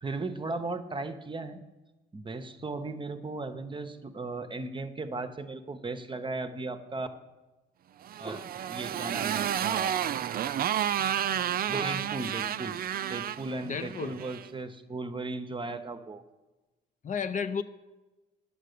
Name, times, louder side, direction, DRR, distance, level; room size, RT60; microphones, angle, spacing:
voice 1, 0.0-1.6 2.1-7.1 8.2-9.9 11.5-12.7 13.1-16.2, right 3 dB, 25° right, 9 dB, 0.8 m, -36 dB
Motorcycle, 8.0-14.5, right 10 dB, 50° right, 0.4 m, -31 dB
voice 2, 13.6-14.2 17.0-17.6, left 6 dB, 40° left, 9 dB, 0.5 m, -32 dB
9.9 x 6.6 x 6.6 m, 1.1 s
cardioid pair, 90°, 20 cm